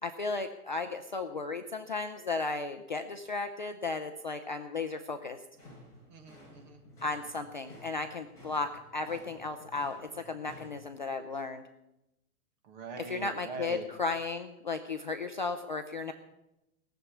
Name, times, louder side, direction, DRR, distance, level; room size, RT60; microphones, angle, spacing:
voice 1, 0.0-5.4 7.0-11.6 13.0-16.1, left 3 dB, 35° left, 6 dB, 0.4 m, -35 dB
sound 1, 5.5-10.8, left 1 dB, 5° left, 7.0 m, -54 dB
voice 2, 6.1-6.8 12.6-13.9 16.1-16.2, right 4 dB, 30° right, 4 dB, 1.7 m, -43 dB
18.5 x 7.2 x 8.1 m, 0.93 s
hypercardioid pair, 175°, 45 cm